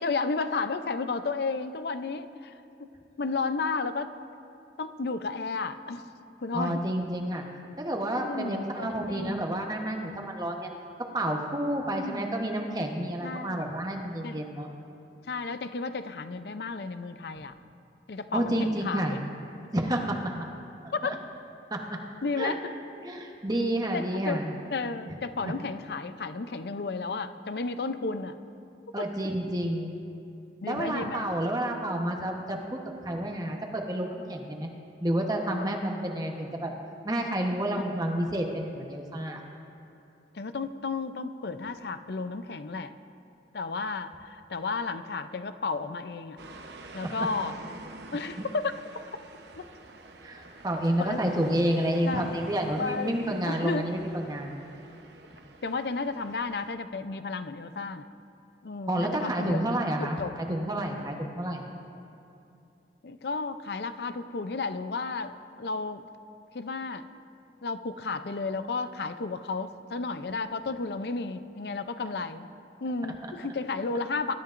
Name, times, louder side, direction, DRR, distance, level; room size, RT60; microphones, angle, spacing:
voice 1, 0.0-2.9 3.2-4.1 4.8-6.0 6.4-6.8 8.2-9.4 11.9-12.3 13.2-13.6 14.2-14.4 15.3-17.5 18.1-19.2 20.9-21.2 22.2-22.6 23.9-24.4 24.7-28.4 30.6-31.3 40.3-42.9 43.5-46.4 46.9-47.5 48.1-48.8 49.6-49.7 51.0-51.5 52.0-52.3 52.8-53.9 55.6-58.1 58.6-59.6 60.0-60.3 61.2-61.3 63.0-66.0 66.5-67.1 67.6-72.5 72.8-74.3, left 4 dB, 65° left, 10 dB, 0.5 m, -33 dB
voice 2, 6.5-7.4 7.8-10.7 11.1-14.7 18.3-19.2 19.7-20.2 21.0-21.2 21.7-22.0 22.3-22.5 23.0-24.5 25.1-25.2 28.9-29.9 30.6-32.8 33.0-34.7 35.0-36.7 37.0-39.4 47.0-47.1 48.4-48.5 50.2-54.6 58.9-61.7, right 1 dB, 20° right, 1 dB, 1.0 m, -30 dB
sound 1, 46.4-56.7, right 2 dB, 75° right, 0.9 m, -48 dB
24.0 x 13.0 x 2.5 m, 2.7 s
head